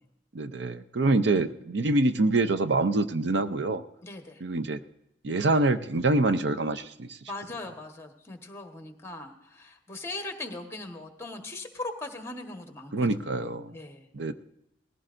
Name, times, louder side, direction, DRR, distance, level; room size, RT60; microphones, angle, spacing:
voice 1, 0.3-3.8 4.4-4.8 5.2-7.2 12.9-13.7 14.1-14.3, right 2 dB, 65° right, 9 dB, 0.6 m, -25 dB
voice 2, 4.0-4.4 7.3-13.1 13.4-14.1, left 2 dB, 15° left, 4 dB, 1.3 m, -40 dB
19.0 x 15.5 x 2.6 m, 0.80 s
head